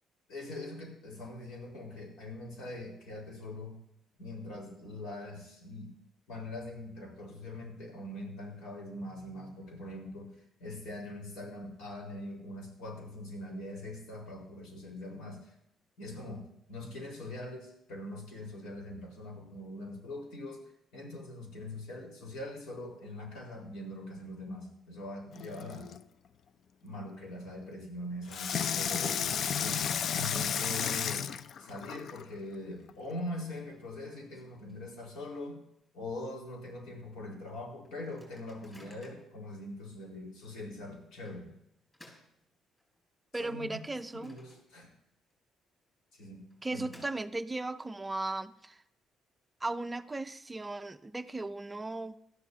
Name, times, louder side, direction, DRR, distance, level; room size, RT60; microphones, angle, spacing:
voice 1, 0.3-3.8 4.2-5.9 6.3-15.5 16.0-25.9 26.8-29.8 30.1-31.3 31.6-35.6 35.9-41.5 43.3-45.0 46.1-46.4 46.7-46.9, left 1 dB, 85° left, 0 dB, 4.3 m, -42 dB
Water tap faucet / Sink (filling or washing), 25.3-26.0 28.3-32.2 32.9-33.0, left 7 dB, 50° left, 0.4 m, -33 dB
Microwave oven, 31.6-31.7 31.9-32.0 32.3-35.4 35.8-35.9 36.2-36.5 37.0-37.1 37.8-39.4 40.0-40.1 41.3-43.1 43.5-45.0 45.3-45.4 46.3-47.7, left 1 dB, 20° left, 4.7 m, -60 dB
voice 2, 43.3-44.4 46.6-48.8 49.6-52.2, right 2 dB, 15° right, 11 dB, 0.4 m, -36 dB
18.5 x 13.0 x 2.8 m, 0.77 s
cardioid pair, 140°, 0 cm